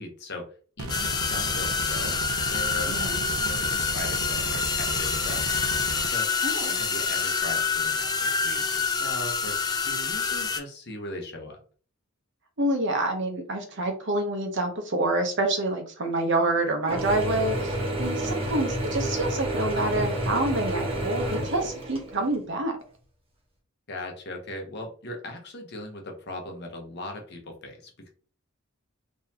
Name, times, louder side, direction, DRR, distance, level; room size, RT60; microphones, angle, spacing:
voice 1, 0.0-2.2 2.5-5.5 6.0-6.3 6.7-11.6 18.3-18.6 23.9-28.1, left 1 dB, 50° left, 3 dB, 1.0 m, -39 dB
sound 1, 0.8-6.1, right 2 dB, 80° right, 0.6 m, -35 dB
sound 2, 0.9-10.6, left 5 dB, 20° left, 0.4 m, -27 dB
voice 2, 2.9-3.2 6.4-6.8 12.6-22.8, right 2 dB, 55° right, 4 dB, 0.9 m, -27 dB
Mechanisms / Drill, 16.9-22.4, right 1 dB, 25° right, 1.2 m, -29 dB
3.9 x 3.0 x 2.8 m, 0.40 s
head